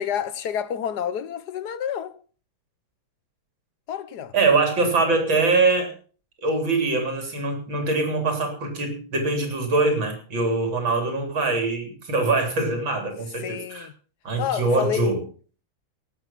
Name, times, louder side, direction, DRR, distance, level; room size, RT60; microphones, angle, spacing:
voice 1, 0.0-2.2 3.9-4.3 13.4-13.9 14.4-15.1, left 9 dB, 65° left, 1.3 m, -29 dB
voice 2, 4.3-5.9 6.4-13.9 14.2-15.2, right 3 dB, 85° right, 4.4 m, -23 dB
18.0 x 8.1 x 5.8 m
omnidirectional pair, 2.1 m